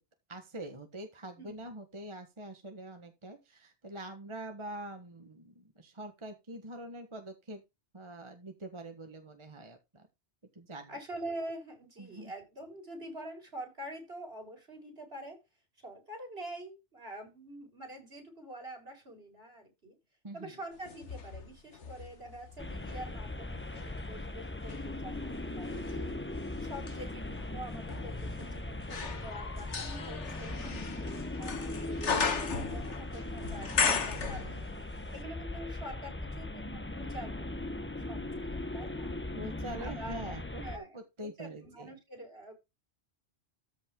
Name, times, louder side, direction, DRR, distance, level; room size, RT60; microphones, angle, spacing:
voice 1, 0.3-7.6 7.9-10.1 10.5-10.9 12.0-12.3 20.2-20.6 39.3-41.9, right 1 dB, 25° right, 6 dB, 1.3 m, -44 dB
voice 2, 1.4-1.7 10.9-15.4 15.8-20.0 20.3-26.2 26.6-34.7 35.1-37.5 37.8-39.1 39.8-42.5, right 1 dB, 60° right, 3 dB, 4.9 m, -46 dB
sound 1, 20.8-23.0 23.6-34.9 35.2-35.3, left 5 dB, 85° left, 1.7 m, -36 dB
sound 2, 22.6-40.8, left 2 dB, 10° left, 0.8 m, -39 dB
13.5 x 5.3 x 3.6 m, 0.23 s
omnidirectional pair, 1.2 m